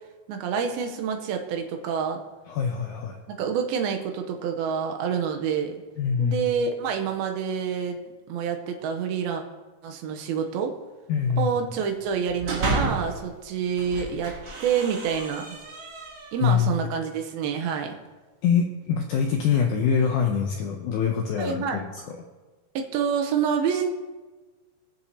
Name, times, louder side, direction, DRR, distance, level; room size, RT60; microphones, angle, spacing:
voice 1, 0.3-2.2 3.4-5.7 6.2-8.0 8.3-9.4 9.8-10.8 11.4-15.6 16.3-18.0 21.4-21.8 22.8-23.9, right 7 dB, 80° right, 4 dB, 2.7 m, -27 dB
voice 2, 2.5-3.2 6.0-6.4 11.1-11.5 16.4-16.7 18.4-22.0, left 7 dB, 90° left, 2 dB, 1.7 m, -24 dB
sound 1, 12.1-13.2 13.7-16.5, right 2 dB, 60° right, 1.1 m, -32 dB
21.0 x 7.0 x 2.8 m, 1.3 s
omnidirectional pair, 4.4 m